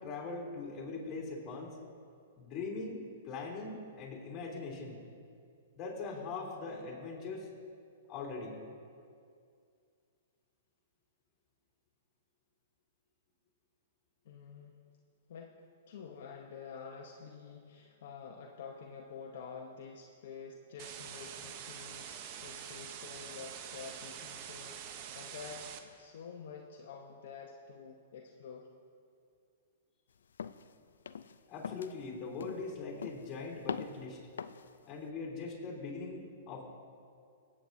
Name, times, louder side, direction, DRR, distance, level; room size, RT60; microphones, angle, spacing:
voice 1, 0.0-1.8 2.4-5.0 5.7-7.5 8.1-8.6 31.5-34.2 34.8-36.6, left 4 dB, 30° left, -3 dB, 3.0 m, -41 dB
voice 2, 14.2-14.8 15.3-15.6 15.9-28.7, left 5 dB, 65° left, 1 dB, 0.9 m, -48 dB
sound 1, 20.8-25.8, right 8 dB, 45° right, 0.8 m, -45 dB
sound 2, 30.4-30.7 31.1-31.4 31.6-32.0 32.4-32.7 33.0-33.4 33.7-34.0 34.4-34.7, left 7 dB, 85° left, 0.4 m, -41 dB
23.5 x 8.7 x 2.7 m, 2.3 s
hypercardioid pair, 135°, 0 cm